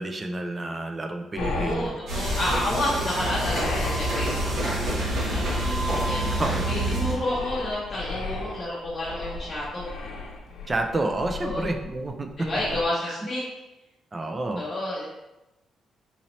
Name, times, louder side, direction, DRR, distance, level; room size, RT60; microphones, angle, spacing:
voice 1, 0.0-2.2 6.4-6.6 10.7-12.5 13.1-13.2 14.1-14.6, right 2 dB, 20° right, 4 dB, 0.4 m, -29 dB
sound 1, 1.4-12.8, left 3 dB, 90° left, 0.6 m, -36 dB
voice 2, 1.4-6.3 6.6-9.9 11.4-11.7 12.4-13.4 14.6-15.1, left 1 dB, 25° left, -9 dB, 0.8 m, -30 dB
sound 2, 2.1-7.2, right 1 dB, 70° right, 1.1 m, -27 dB
4.0 x 2.8 x 3.0 m, 0.97 s
cardioid pair, 140°, 0 cm